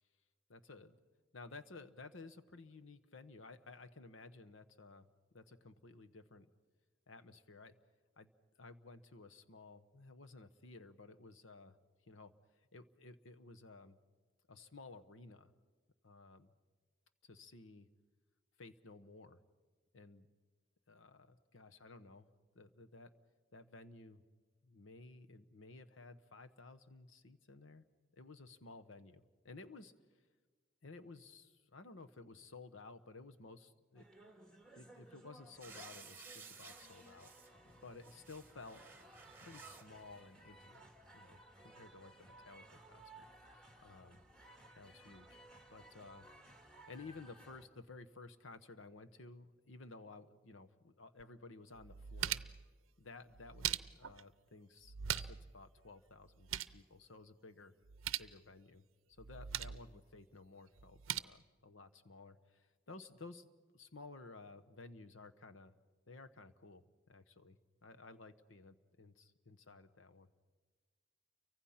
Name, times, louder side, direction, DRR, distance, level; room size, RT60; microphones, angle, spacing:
voice 1, 0.5-1.0 1.3-5.1 5.3-6.5 7.1-7.7 8.2-8.3 8.6-11.8 12.1-12.3 12.7-14.0 14.5-15.5 16.0-16.5 17.2-17.9 18.6-19.4 19.9-20.3 20.9-22.3 22.5-23.1 23.5-24.2 24.6-27.8 28.1-29.9 30.8-34.0 34.7-37.3 37.8-38.8 39.4-40.9 41.1-41.4 41.6-44.2 44.8-45.4 45.7-46.3 46.6-52.4 53.0-53.6 53.9-57.7 58.2-58.8 59.2-65.7 66.1-66.8 67.1-70.3, left 3 dB, 80° left, 9 dB, 1.1 m, -55 dB
sound 1, 33.9-47.7, right 1 dB, 5° left, 1.9 m, -59 dB
sound 2, 35.6-37.5 37.9-39.9 40.7-40.8, right 5 dB, 10° right, 1.6 m, -55 dB
sound 3, 51.2-51.3 51.8-52.7 53.3-54.2 54.8-55.5 55.8-55.9 56.2-56.8 57.8-58.3 59.2-59.8 60.8-61.2, right 11 dB, 90° right, 0.6 m, -40 dB
29.5 x 24.0 x 5.8 m, 1.4 s
head